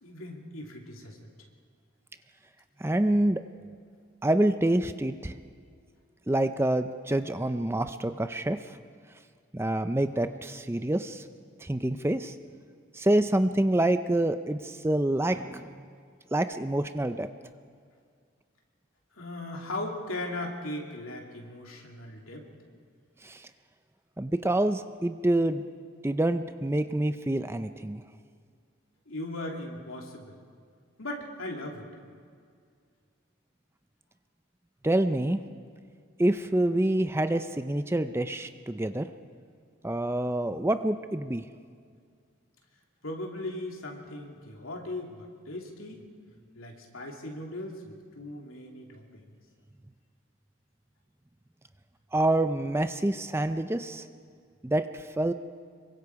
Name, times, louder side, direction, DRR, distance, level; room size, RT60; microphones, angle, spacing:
voice 1, 0.0-1.3 19.1-22.5 29.1-30.4 31.0-31.9 43.0-46.0 46.5-49.2, left 1 dB, 75° left, 0 dB, 3.0 m, -38 dB
voice 2, 2.8-3.4 4.2-5.3 6.3-8.8 9.5-11.2 11.6-12.3 12.9-15.8 16.3-17.3 23.2-23.5 24.2-25.6 26.0-28.0 34.8-35.5 36.2-39.1 39.8-41.5 52.1-54.1 54.6-55.3, right 1 dB, 10° right, 9 dB, 0.5 m, -27 dB
26.0 x 23.5 x 4.8 m, 2.1 s
head